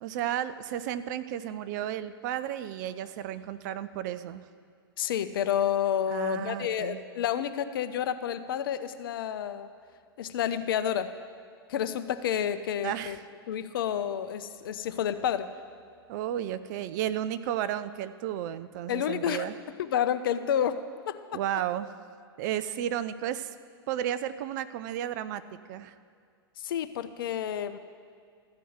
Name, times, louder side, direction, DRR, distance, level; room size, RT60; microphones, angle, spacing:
voice 1, 0.0-4.4 6.1-7.0 12.8-13.2 16.1-19.5 21.3-21.9 22.4-23.5 23.9-25.4 25.7-25.9, right 11 dB, 50° right, 13 dB, 0.5 m, -33 dB
voice 2, 5.0-9.7 10.2-11.2 11.7-13.2 13.5-15.5 18.9-19.5 19.8-21.4 26.6-27.8, left 9 dB, 60° left, 11 dB, 0.6 m, -30 dB
14.0 x 4.6 x 7.9 m, 2.2 s
figure-of-eight pair, 100°, 13 cm